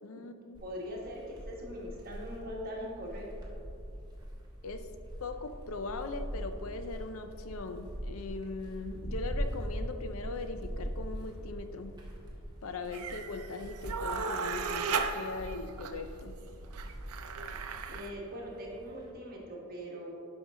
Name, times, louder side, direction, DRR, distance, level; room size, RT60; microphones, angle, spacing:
voice 1, 0.0-0.6 4.6-4.9 5.2-11.9 12.6-16.4, left 3 dB, 65° left, 8 dB, 0.5 m, -40 dB
sound 1, 0.5-19.1, equal, 20° right, 1.3 m, -42 dB
voice 2, 0.6-3.5 17.9-20.1, equal, 40° right, -3 dB, 1.6 m, -41 dB
sound 2, 12.9-18.1, right 5 dB, 85° right, 0.6 m, -36 dB
11.0 x 5.3 x 3.7 m, 2.5 s
head